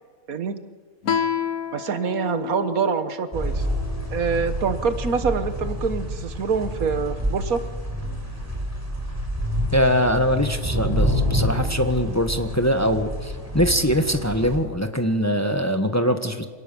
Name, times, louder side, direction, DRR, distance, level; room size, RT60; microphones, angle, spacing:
Guitar, 1.0-4.3, left 8 dB, 90° left, 1.5 m, -30 dB
voice 1, 1.7-3.7 4.1-7.6, right 6 dB, 80° right, 11 dB, 1.6 m, -25 dB
sound 1, 3.3-14.6, equal, 10° right, 4.5 m, -28 dB
voice 2, 9.7-16.4, equal, 10° left, 7 dB, 1.2 m, -22 dB
26.5 x 18.5 x 7.0 m, 1.5 s
omnidirectional pair, 1.5 m